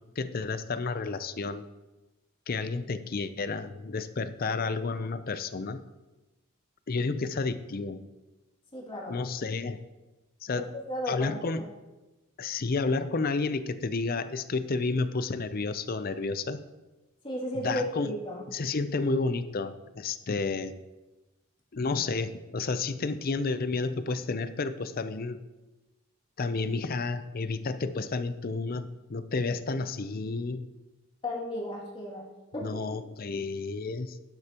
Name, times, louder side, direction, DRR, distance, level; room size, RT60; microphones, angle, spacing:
voice 1, 0.2-1.7 2.5-5.8 6.9-8.0 9.1-9.8 10.4-10.7 11.1-11.6 12.4-16.6 17.6-18.1 18.5-20.7 21.7-25.4 26.4-30.6 32.6-34.2, left 3 dB, 45° left, 12 dB, 0.5 m, -31 dB
voice 2, 8.7-9.2 10.5-11.6 17.2-18.5 31.2-32.3 32.5-32.8, left 1 dB, 25° left, -5 dB, 2.5 m, -34 dB
12.0 x 9.7 x 3.0 m, 1.1 s
head